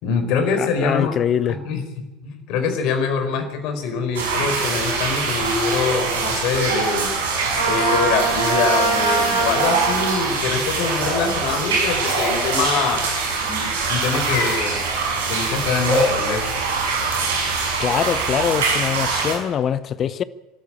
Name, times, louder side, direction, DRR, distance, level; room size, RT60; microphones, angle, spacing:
voice 1, 0.0-1.1 1.5-7.1 7.6-13.0 13.4-14.8 15.3-16.4, left 5 dB, 50° left, 4.6 m, -24 dB
voice 2, 0.6-1.6 17.8-20.2, left 9 dB, 35° left, 0.9 m, -23 dB
sound 1, 4.2-19.4, right 4 dB, 70° right, 6.2 m, -23 dB
Trumpet, 7.5-10.1, right 3 dB, 85° right, 6.1 m, -22 dB
25.5 x 13.0 x 8.7 m
figure-of-eight pair, 75°, 0 cm